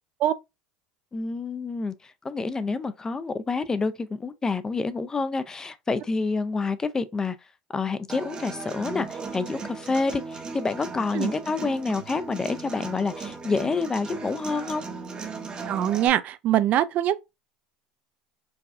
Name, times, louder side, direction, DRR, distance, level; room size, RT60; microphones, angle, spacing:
voice 1, 1.1-7.4 7.7-14.8, left 4 dB, 20° left, 0.4 m, -28 dB
Human voice / Acoustic guitar, 8.1-16.1, right 4 dB, 25° right, 0.8 m, -37 dB
voice 2, 15.7-17.2, right 12 dB, 50° right, 0.4 m, -23 dB
4.7 x 2.3 x 2.5 m
supercardioid pair, 110°, 3 cm